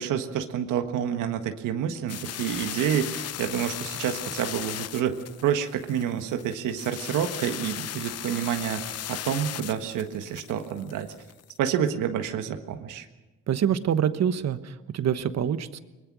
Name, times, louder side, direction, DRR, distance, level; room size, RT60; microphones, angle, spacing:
voice 1, 0.0-5.2 5.4-11.1 11.6-13.1, right 9 dB, 90° right, 6 dB, 1.5 m, -28 dB
sound 1, 2.1-11.5, left 11 dB, 55° left, 0.6 m, -37 dB
voice 2, 13.5-15.8, right 9 dB, 60° right, 12 dB, 1.2 m, -26 dB
22.5 x 21.0 x 6.2 m, 1.1 s
cardioid pair, 90°, 30 cm